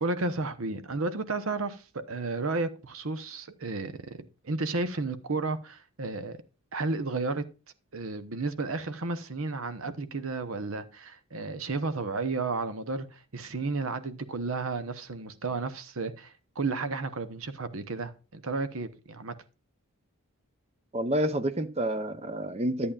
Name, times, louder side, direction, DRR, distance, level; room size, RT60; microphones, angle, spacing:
voice 1, 0.0-3.9 4.2-6.4 6.7-7.4 7.9-19.3, right 3 dB, 65° right, 0.9 m, -32 dB
voice 2, 20.9-22.9, right 1 dB, 30° right, 0.7 m, -29 dB
11.0 x 8.5 x 2.5 m
head